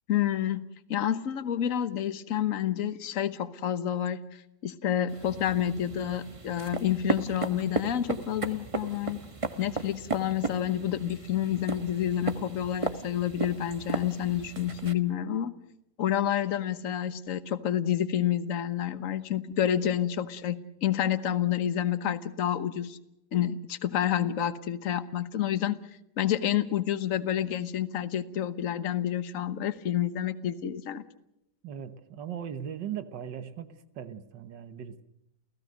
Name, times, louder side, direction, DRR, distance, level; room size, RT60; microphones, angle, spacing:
voice 1, 0.1-9.2 9.6-15.5 16.0-23.0 23.3-25.8 26.2-31.0, left 10 dB, 55° left, 13 dB, 1.4 m, -29 dB
sound 1, 5.1-14.9, right 3 dB, 20° right, 1.0 m, -35 dB
voice 2, 31.6-35.0, right 9 dB, 90° right, 11 dB, 1.9 m, -39 dB
29.0 x 16.5 x 6.5 m, 0.85 s
omnidirectional pair, 1.9 m